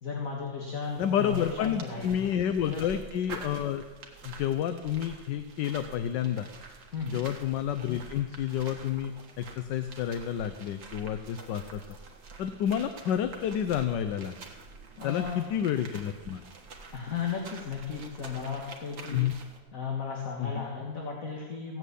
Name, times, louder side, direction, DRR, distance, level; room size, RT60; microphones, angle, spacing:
voice 1, 0.0-2.2 2.6-2.8 6.9-7.2 15.0-15.5 16.9-19.2 19.7-21.8, left 6 dB, 45° left, -1 dB, 2.1 m, -35 dB
sound 1, 0.8-19.6, right 4 dB, 80° right, 2.3 m, -47 dB
voice 2, 1.0-3.8 4.2-6.5 7.1-11.8 12.4-14.4 15.0-16.4 19.1-19.3 20.4-20.6, left 9 dB, 75° left, 10 dB, 1.3 m, -30 dB
15.5 x 9.2 x 8.4 m, 1.3 s
omnidirectional pair, 2.0 m